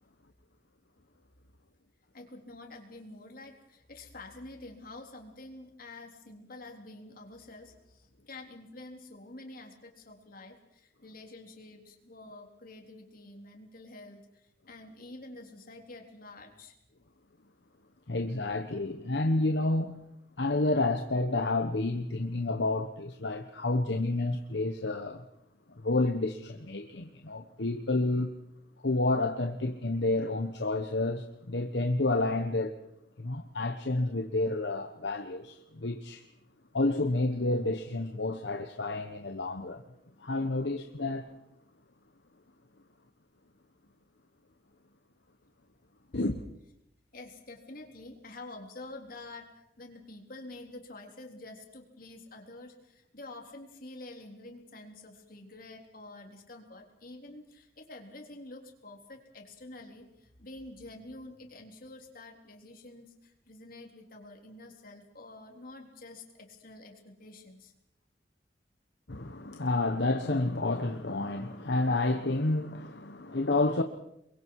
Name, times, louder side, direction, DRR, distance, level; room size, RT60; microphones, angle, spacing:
voice 1, 2.1-16.8 47.1-67.7, left 2 dB, 55° left, 3.7 m, -48 dB
voice 2, 18.1-20.0 20.4-25.2 25.8-28.3 28.8-32.8 33.2-36.3 36.7-39.8 40.2-41.3 46.1-46.4 69.1-73.8, left 2 dB, 75° left, 1.2 m, -30 dB
28.5 x 22.5 x 4.8 m
head